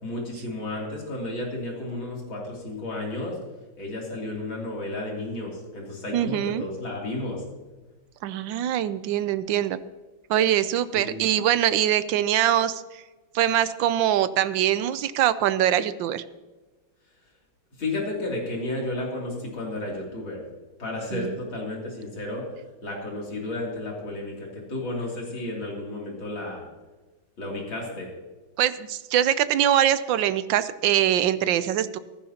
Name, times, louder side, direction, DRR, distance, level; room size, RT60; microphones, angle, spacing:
voice 1, 0.0-3.4 3.8-7.4 10.9-11.2 17.8-20.4 20.8-22.5 22.8-26.6 27.4-28.1, left 2 dB, 65° left, -2 dB, 3.8 m, -32 dB
voice 2, 6.1-6.6 8.2-9.8 10.3-13.0 13.3-16.2 21.1-21.4 28.6-32.0, right 11 dB, 70° right, 14 dB, 1.2 m, -23 dB
15.0 x 14.5 x 2.9 m, 1.2 s
omnidirectional pair, 2.4 m